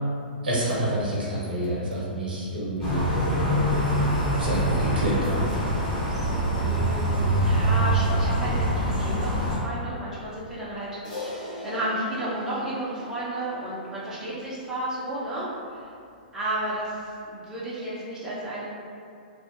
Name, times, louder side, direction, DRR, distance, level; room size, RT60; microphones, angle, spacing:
voice 1, 0.4-3.0 4.3-5.4, right 1 dB, 70° right, -6 dB, 0.7 m, -27 dB
sound 1, 2.8-9.6, right 1 dB, 35° left, 1.2 m, -24 dB
voice 2, 6.1-10.9 11.6-15.8 16.3-18.6, right 1 dB, 10° right, -9 dB, 0.5 m, -32 dB
Crash cymbal, 11.0-15.6, left 1 dB, 55° left, 1.0 m, -41 dB
2.5 x 2.1 x 2.4 m, 2.4 s
figure-of-eight pair, 110°, 5 cm